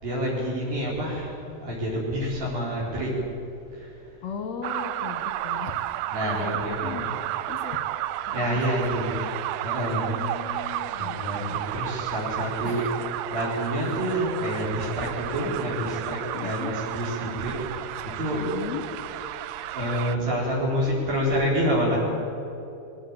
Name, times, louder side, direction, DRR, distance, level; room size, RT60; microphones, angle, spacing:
voice 1, 0.0-3.1 3.8-3.9 6.1-7.1 8.3-9.2 9.6-10.2 10.6-12.9 13.3-18.4 19.3-19.4 19.7-22.0, equal, 60° right, -4 dB, 5.7 m, -28 dB
voice 2, 4.2-5.9 6.2-7.1 7.5-9.3 9.9-11.6 12.6-13.0 16.3-16.7 18.4-18.8, left 7 dB, 60° left, 5 dB, 2.0 m, -38 dB
sound 1, 4.6-20.2, right 14 dB, 80° right, 2.4 m, -32 dB
21.5 x 17.0 x 8.9 m, 2.8 s
omnidirectional pair, 4.8 m